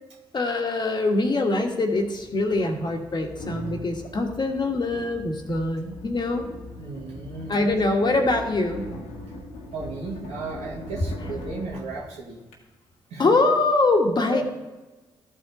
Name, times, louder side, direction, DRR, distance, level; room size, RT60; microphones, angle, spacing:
voice 1, 0.3-6.4 7.5-8.8 13.2-14.4, left 2 dB, 40° left, 3 dB, 1.6 m, -23 dB
sound 1, 2.0-12.6, left 1 dB, 75° left, 1.6 m, -40 dB
voice 2, 6.8-7.7 8.0-8.1 9.7-12.4 13.1-13.3 14.3-14.4, right 3 dB, 70° right, -3 dB, 2.1 m, -35 dB
13.5 x 4.8 x 3.9 m, 1.2 s
hypercardioid pair, 40°, 11 cm